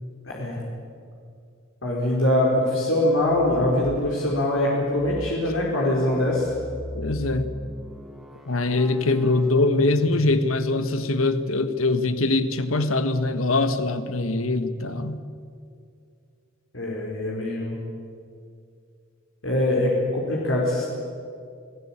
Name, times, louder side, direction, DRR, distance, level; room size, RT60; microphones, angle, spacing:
voice 1, 0.3-0.6 1.8-6.5 16.7-17.8 19.4-20.9, left 1 dB, 70° left, -3 dB, 4.5 m, -23 dB
sound 1, 3.1-4.1 4.9-10.9, left 1 dB, ahead, 2.2 m, -39 dB
voice 2, 6.9-7.5 8.5-15.2, left 2 dB, 85° left, 10 dB, 1.6 m, -23 dB
28.5 x 17.5 x 8.9 m, 2.4 s
head